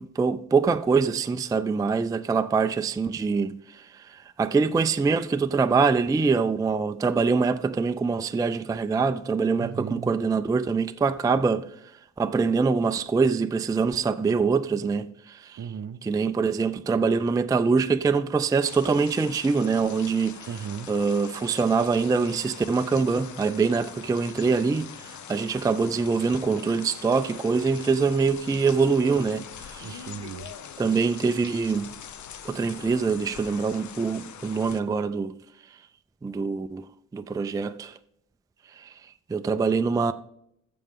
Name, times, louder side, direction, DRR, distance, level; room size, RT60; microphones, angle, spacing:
voice 1, 0.0-11.7 12.2-15.7 16.0-20.5 20.9-30.1 30.8-31.9 32.4-35.4 36.2-36.9 37.1-38.0 38.7-38.9 39.3-40.1, right 4 dB, 10° right, 0.3 m, -24 dB
voice 2, 9.6-10.1 15.6-16.1 20.5-20.9 29.8-30.5, right 7 dB, 55° right, 0.6 m, -36 dB
Bahnhof Regen Stark Wassergeplätscher vom Dach, 18.6-34.8, left 8 dB, 70° left, 0.8 m, -43 dB
14.5 x 6.8 x 3.6 m
cardioid pair, 110°, 30 cm